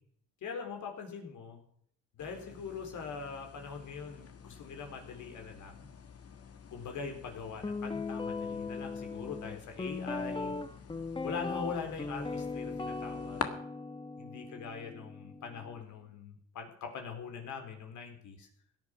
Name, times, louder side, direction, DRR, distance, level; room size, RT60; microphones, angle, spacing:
voice 1, 0.4-1.6 2.2-5.9 6.7-10.5 11.2-13.4 14.2-18.5, left 5 dB, 75° left, 4 dB, 4.0 m, -42 dB
sound 1, 2.2-13.5, left 7 dB, 50° left, 1.9 m, -47 dB
Guitar, 7.6-15.8, left 3 dB, 15° left, 1.1 m, -39 dB
17.0 x 10.5 x 6.1 m, 0.64 s
cardioid pair, 90°, 30 cm